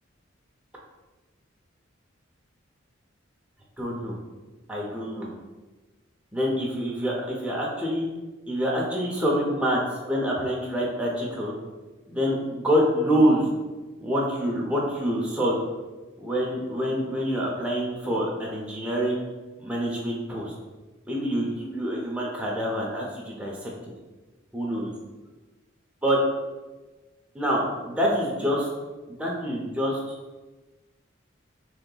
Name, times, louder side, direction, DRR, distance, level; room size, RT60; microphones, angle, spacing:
voice 1, 3.8-4.1 4.7-5.3 6.3-8.1 8.5-9.8 10.1-11.5 12.1-13.5 14.0-15.6 16.2-19.3 19.6-20.5 21.1-23.7 24.5-24.9 26.0-26.2 27.3-28.7 29.2-30.0, equal, 5° right, -4 dB, 0.5 m, -26 dB
3.0 x 2.8 x 3.8 m, 1.2 s
head